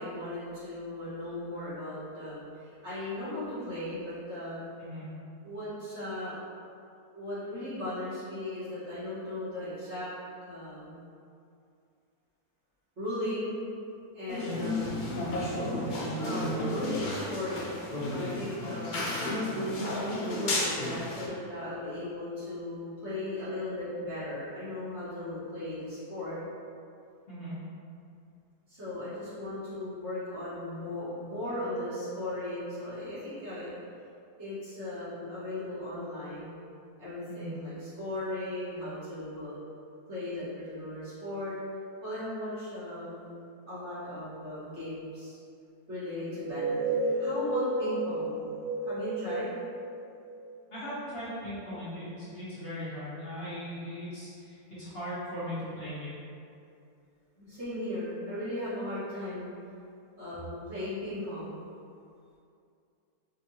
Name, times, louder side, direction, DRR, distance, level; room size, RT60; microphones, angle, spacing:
voice 1, 0.0-4.7 5.4-6.4 7.1-10.1 10.4-11.0 13.0-13.6 14.1-15.0 16.2-19.3 19.9-26.4 28.7-33.7 34.4-36.6 37.0-39.6 40.1-41.5 42.0-43.3 43.7-45.4 45.9-48.5 48.8-49.5 57.4-59.5 60.2-61.6, left 1 dB, 50° right, -13 dB, 1.5 m, -37 dB
sound 1, 14.3-21.3, left 1 dB, 75° left, 0.4 m, -32 dB
sound 2, 46.3-50.9, right 2 dB, 10° right, 1.2 m, -32 dB
voice 2, 50.7-56.1, equal, 45° left, -12 dB, 1.0 m, -39 dB
4.5 x 2.4 x 2.7 m, 2.5 s
omnidirectional pair, 1.6 m